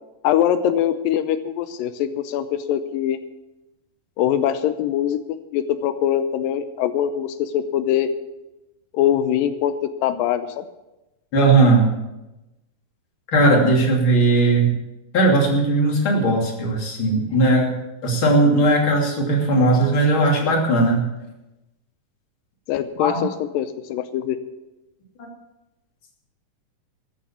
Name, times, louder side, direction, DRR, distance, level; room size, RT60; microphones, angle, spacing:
voice 1, 0.2-3.2 4.2-5.2 5.5-8.1 8.9-10.6 22.7-24.4, left 10 dB, 90° left, 11 dB, 2.4 m, -22 dB
voice 2, 11.3-12.0 13.3-14.7 15.1-17.7 18.0-21.1 23.0-23.2 25.2-25.3, right 2 dB, 40° left, 0 dB, 3.3 m, -18 dB
14.0 x 9.6 x 7.1 m, 0.98 s
omnidirectional pair, 3.9 m